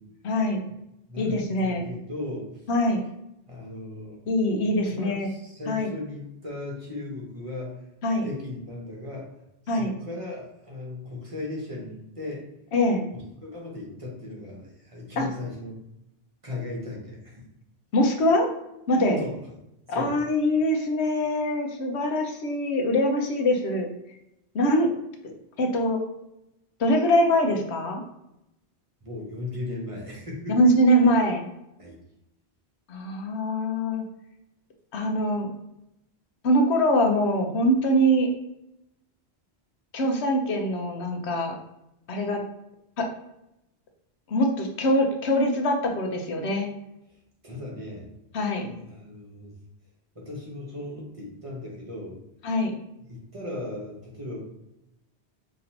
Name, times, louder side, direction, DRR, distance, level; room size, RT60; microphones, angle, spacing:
voice 1, 0.2-0.6 1.2-1.9 2.7-3.0 4.3-5.3 5.7-5.9 8.0-8.3 9.7-9.9 12.7-13.0 15.2-15.3 17.9-18.5 18.9-19.2 19.9-23.9 24.5-24.9 25.6-26.0 26.8-28.0 30.5-31.5 32.9-34.0 34.9-35.5 36.4-38.3 39.9-41.6 42.1-42.4 43.0-43.1 44.3-46.7 48.3-48.7 52.4-52.7, equal, 85° left, 3 dB, 1.0 m, -23 dB
voice 2, 1.1-2.6 3.5-4.2 4.9-7.9 8.2-9.3 9.6-12.5 13.4-15.7 16.4-17.4 19.2-19.4 19.9-20.2 29.0-30.6 31.8-32.0 47.1-47.2 47.4-48.1 48.6-49.5 50.1-52.2 53.1-54.4, left 2 dB, 30° right, -3 dB, 1.2 m, -37 dB
5.1 x 2.9 x 2.9 m, 0.84 s
omnidirectional pair, 1.1 m